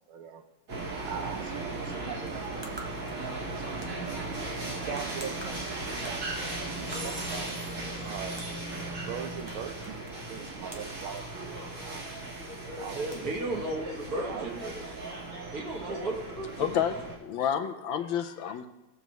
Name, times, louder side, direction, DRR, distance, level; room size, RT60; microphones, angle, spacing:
voice 1, 0.1-0.4 0.9-4.2 4.7-7.5 8.0-8.4 8.9-9.8 10.1-12.1 12.8-13.1 14.2-14.8 15.0-15.6, right 8 dB, 85° right, 7 dB, 1.6 m, -42 dB
sound 1, 0.7-17.1, right 2 dB, 65° right, 3.0 m, -37 dB
sound 2, 2.1-14.6, right 2 dB, 30° right, 0.5 m, -52 dB
voice 2, 12.9-14.8 15.5-16.8, right 2 dB, 45° right, -1 dB, 2.1 m, -34 dB
voice 3, 16.6-17.0 17.2-18.7, left 9 dB, 75° left, 7 dB, 1.4 m, -29 dB
20.0 x 7.1 x 3.1 m, 1.0 s
omnidirectional pair, 2.3 m